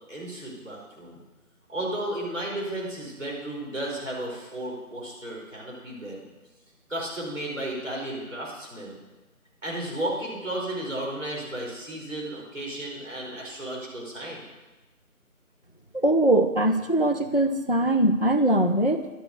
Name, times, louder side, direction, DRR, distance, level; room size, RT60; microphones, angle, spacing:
voice 1, 0.1-1.2 1.7-6.2 6.9-9.0 9.6-14.4, right 1 dB, 55° right, -2 dB, 5.0 m, -33 dB
voice 2, 15.9-19.1, right 1 dB, 40° left, 8 dB, 0.6 m, -22 dB
12.0 x 8.9 x 6.8 m, 1.2 s
figure-of-eight pair, 170°, 44 cm